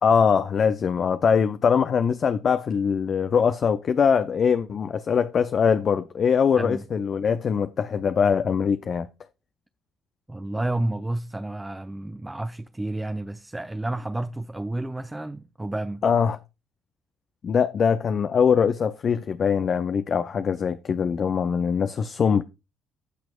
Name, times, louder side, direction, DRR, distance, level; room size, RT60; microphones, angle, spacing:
voice 1, 0.0-9.1 16.0-16.4 17.4-22.4, left 6 dB, 45° left, 0.6 m, -22 dB
voice 2, 10.3-16.0, right 1 dB, 10° right, 0.6 m, -30 dB
16.5 x 6.0 x 2.3 m
figure-of-eight pair, 50°, 0 cm